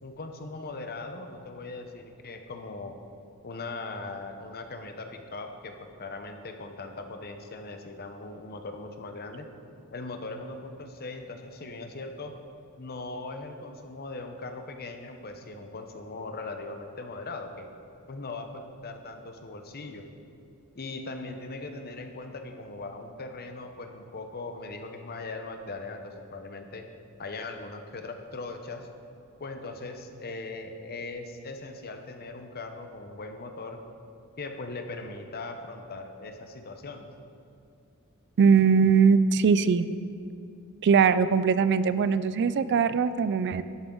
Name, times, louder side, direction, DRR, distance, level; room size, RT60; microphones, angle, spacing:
voice 1, 0.0-2.9 3.4-9.5 9.9-12.3 12.8-17.7 18.1-20.0 20.7-26.9 27.2-28.9 29.4-33.8 34.4-37.1, left 3 dB, 45° left, 6 dB, 0.9 m, -39 dB
voice 2, 38.4-39.9 40.8-43.6, right 6 dB, 50° right, 14 dB, 0.3 m, -21 dB
11.5 x 9.5 x 3.9 m, 2.5 s
head